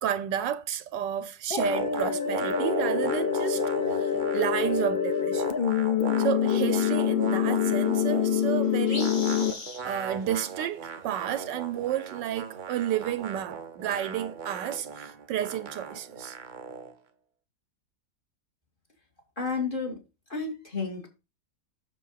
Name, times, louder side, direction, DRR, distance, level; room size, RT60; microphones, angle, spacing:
voice 1, 0.0-5.5 6.2-9.4 9.8-16.4, right 10 dB, 80° right, 1.3 m, -31 dB
sound 1, 1.5-9.5, left 8 dB, 50° left, 0.6 m, -26 dB
sound 2, 1.6-4.9 5.1-8.4 8.9-16.9, right 6 dB, 60° right, 0.5 m, -38 dB
sound 3, 8.5-8.6 8.7-10.3 10.5-10.8 11.2-11.3 11.5-11.6 12.8-12.9, left 3 dB, 80° left, 3.5 m, -38 dB
voice 2, 19.4-19.9 20.3-21.1, left 4 dB, 25° left, 2.7 m, -31 dB
7.7 x 6.8 x 5.0 m
omnidirectional pair, 1.9 m